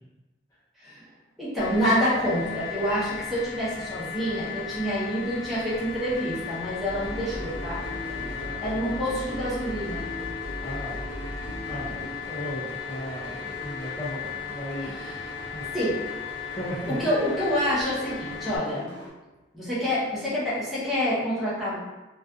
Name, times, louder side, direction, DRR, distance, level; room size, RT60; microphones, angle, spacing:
voice 1, 1.4-7.8 8.6-10.1 14.8-15.3 15.7-16.0 16.9-18.9 19.5-21.8, equal, ahead, -10 dB, 0.7 m, -27 dB
sound 1, 1.6-18.6, left 6 dB, 90° left, 0.4 m, -36 dB
sound 2, 6.9-19.1, equal, 70° left, 0.9 m, -39 dB
voice 2, 7.7-8.9 10.6-11.0 11.7-15.0 15.5-15.6 16.5-17.0, equal, 15° left, -8 dB, 0.3 m, -36 dB
2.4 x 2.3 x 2.3 m, 1.1 s
head